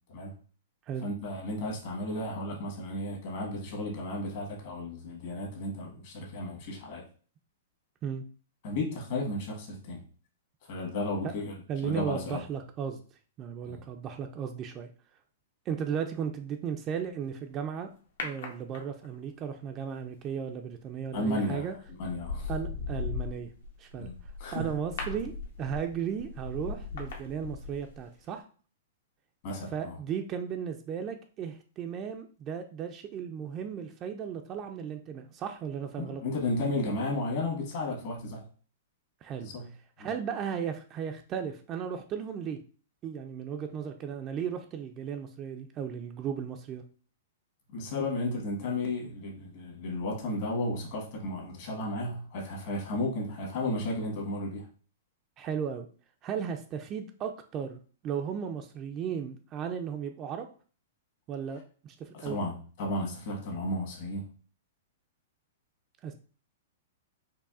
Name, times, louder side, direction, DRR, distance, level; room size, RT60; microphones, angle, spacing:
voice 1, 1.0-7.0 8.6-10.0 10.7-11.5 11.8-12.4 13.6-13.8 21.1-21.7 22.0-22.5 24.0-24.7 29.4-29.9 36.0-38.4 39.4-39.7 40.0-40.1 47.7-54.6 62.1-64.3, left 1 dB, 55° left, 0 dB, 1.5 m, -33 dB
voice 2, 11.7-13.0 13.4-14.9 15.7-17.9 18.2-21.7 22.5-23.5 23.8-24.1 24.5-28.4 29.7-36.2 39.2-39.5 40.0-42.6 43.0-46.8 55.4-55.9 56.2-60.5 61.3-62.4 66.0-66.1, right 7 dB, 30° right, 5 dB, 0.3 m, -35 dB
sound 1, 18.2-19.2 21.1-21.4 21.8-28.0 28.3-28.4, left 4 dB, 75° left, 1.0 m, -38 dB
4.7 x 2.6 x 2.5 m, 0.40 s
hypercardioid pair, 135°, 0 cm